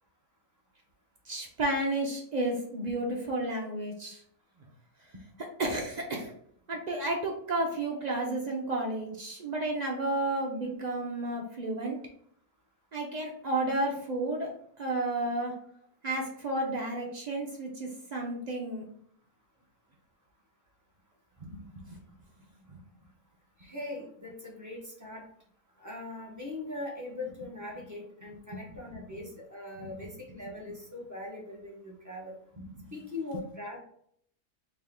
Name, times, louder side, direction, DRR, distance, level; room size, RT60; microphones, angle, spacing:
voice 1, 1.3-4.2 5.4-6.3 6.7-12.0 12.9-14.5 14.8-15.5 16.0-18.9 21.4-22.0 22.7-22.8 28.3-28.6 29.8-29.9 32.8-32.9, right 1 dB, 55° right, 0 dB, 0.4 m, -32 dB
voice 2, 23.6-25.2 25.8-32.3 32.9-33.8, left 2 dB, 15° right, -4 dB, 0.8 m, -41 dB
3.5 x 2.8 x 3.6 m, 0.65 s
omnidirectional pair, 1.6 m